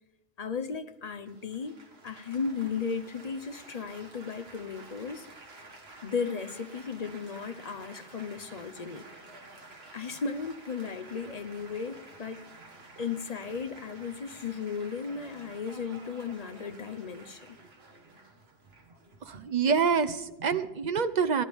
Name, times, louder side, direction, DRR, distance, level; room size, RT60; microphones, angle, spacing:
voice 1, 0.4-1.8 2.0-5.3 6.0-9.0 9.9-12.5 13.0-17.6, left 5 dB, 45° left, 0.7 m, -35 dB
Laughter / Applause / Chatter, 1.2-20.4, right 2 dB, 65° right, 1.9 m, -51 dB
voice 2, 19.2-21.4, right 6 dB, 45° right, 0.7 m, -26 dB
29.5 x 11.5 x 3.5 m
omnidirectional pair, 1.1 m